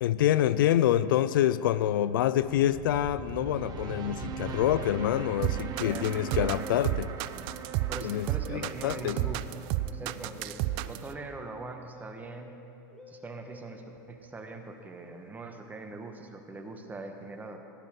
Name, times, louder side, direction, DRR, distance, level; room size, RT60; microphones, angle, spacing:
voice 1, 0.0-7.1 8.0-9.2, left 12 dB, 85° left, 0.4 m, -26 dB
sound 1, 2.2-11.1, right 6 dB, 35° right, 1.0 m, -41 dB
sound 2, 5.4-11.1, right 16 dB, 50° right, 0.4 m, -31 dB
voice 2, 5.8-7.0 7.9-12.5 13.1-17.6, right 3 dB, 15° right, 1.2 m, -42 dB
Musical instrument, 8.4-15.2, left 1 dB, 5° left, 1.4 m, -53 dB
16.0 x 11.0 x 3.7 m
supercardioid pair, 115°, 11 cm